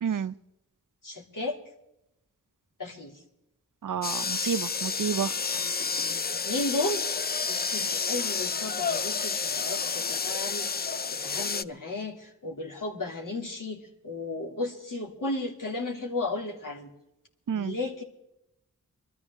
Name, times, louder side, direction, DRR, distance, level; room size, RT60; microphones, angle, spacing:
voice 1, 0.0-0.3 3.8-5.3 17.5-17.7, right 8 dB, 65° right, 0.6 m, -30 dB
voice 2, 1.0-1.6 2.8-3.2 6.3-7.1 7.5-10.8 11.2-16.9 17.5-18.0, left 2 dB, 70° left, 2.8 m, -34 dB
sound 1, 4.0-11.6, left 5 dB, 30° left, 0.4 m, -30 dB
23.5 x 13.5 x 3.6 m
wide cardioid pair, 65°, 33 cm